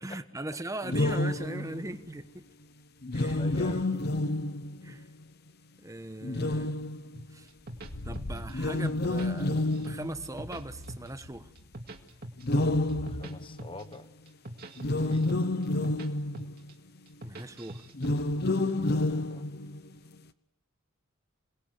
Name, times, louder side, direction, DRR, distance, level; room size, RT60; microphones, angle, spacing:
voice 1, 0.0-2.5 3.1-4.0 4.8-5.1 5.8-6.8 7.3-7.5 8.0-11.5 17.2-17.8, right 1 dB, 15° right, 10 dB, 1.1 m, -40 dB
sound 1, 0.8-2.0 3.0-5.0 6.2-7.4 8.5-10.6 12.4-13.8 14.8-16.7 17.9-19.9, left 2 dB, 50° left, 0.9 m, -29 dB
voice 2, 3.2-3.9 13.0-14.1 14.9-15.3 18.7-19.4, left 2 dB, 25° left, 11 dB, 1.2 m, -46 dB
sound 2, 7.1-8.5 8.8-10.0 10.2-11.2 11.6-13.3 13.6-13.9 14.3-16.1 16.3-16.7 17.1-18.1, right 1 dB, 45° right, 2.2 m, -43 dB
sound 3, 7.6-13.2, left 1 dB, 80° left, 1.6 m, -44 dB
27.5 x 20.0 x 8.2 m, 0.90 s
head